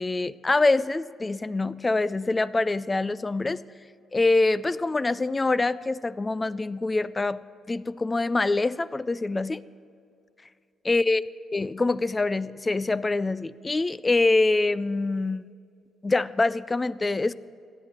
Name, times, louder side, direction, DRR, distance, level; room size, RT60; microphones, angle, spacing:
voice 1, 0.0-3.6 4.1-7.4 7.7-9.6 10.8-11.2 11.5-15.4 16.0-17.3, left 3 dB, 20° left, 18 dB, 0.4 m, -25 dB
17.0 x 10.5 x 4.4 m, 2.5 s
cardioid pair, 90°, 0 cm